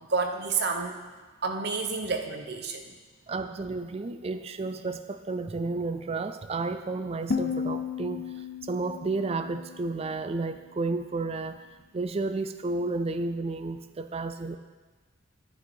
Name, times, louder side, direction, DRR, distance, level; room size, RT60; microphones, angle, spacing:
voice 1, 0.1-1.0 1.4-2.9, right 4 dB, 55° right, 5 dB, 0.9 m, -29 dB
voice 2, 3.3-11.7 11.9-14.6, right 3 dB, 30° right, 10 dB, 0.4 m, -32 dB
sound 1, 7.3-10.3, left 5 dB, 45° left, 0.6 m, -34 dB
9.5 x 9.5 x 4.5 m, 1.3 s
head